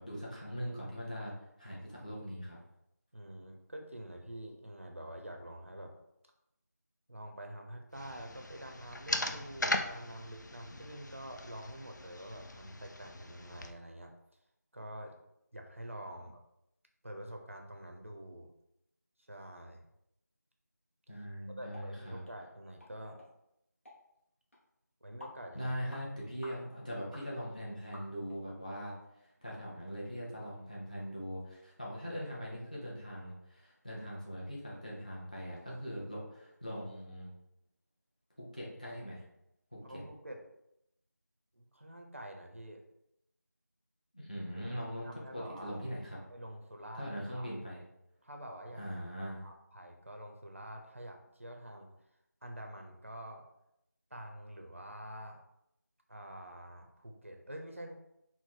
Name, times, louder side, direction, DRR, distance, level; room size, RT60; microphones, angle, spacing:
voice 1, 0.0-2.6 16.1-16.2 21.1-22.2 25.5-37.3 38.4-39.2 39.7-40.0 44.1-46.2 47.0-47.8 48.8-49.5, equal, 25° left, -5 dB, 0.8 m, -41 dB
voice 2, 3.1-5.9 7.1-14.1 14.7-15.2 15.5-16.4 17.0-18.5 19.3-19.8 21.6-23.2 25.0-25.7 39.8-40.4 41.5-42.8 45.0-45.8 46.3-47.5 48.2-48.8 49.4-51.9 52.4-53.4 54.1-55.4 56.1-57.9, right 1 dB, 45° right, 2 dB, 0.5 m, -47 dB
sound 1, 7.9-13.7, left 2 dB, 80° left, 0.5 m, -39 dB
sound 2, 21.7-21.9 22.2-22.4 22.8-22.9 23.2-23.3 23.9-24.0 24.5-24.6 25.2-25.4 25.9-26.1 26.4-26.6 27.1-27.3 27.9-28.4 28.9-29.0 29.4-29.6 30.0-30.1, left 1 dB, 45° left, 1.3 m, -51 dB
4.2 x 2.0 x 4.5 m, 0.82 s
figure-of-eight pair, 180°, 10 cm